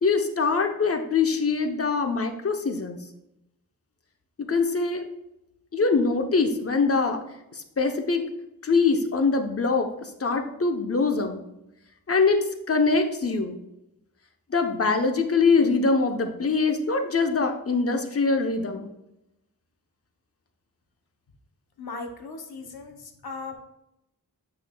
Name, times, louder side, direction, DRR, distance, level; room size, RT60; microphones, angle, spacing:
voice 1, 0.0-3.0 4.4-5.1 5.7-7.2 7.5-8.2 8.6-11.4 12.1-12.4 12.7-13.6 14.5-18.9, left 4 dB, 40° left, 5 dB, 0.8 m, -23 dB
voice 2, 21.8-23.5, left 3 dB, 85° left, 4 dB, 0.9 m, -38 dB
7.1 x 5.9 x 2.2 m, 0.88 s
wide cardioid pair, 60°, 37 cm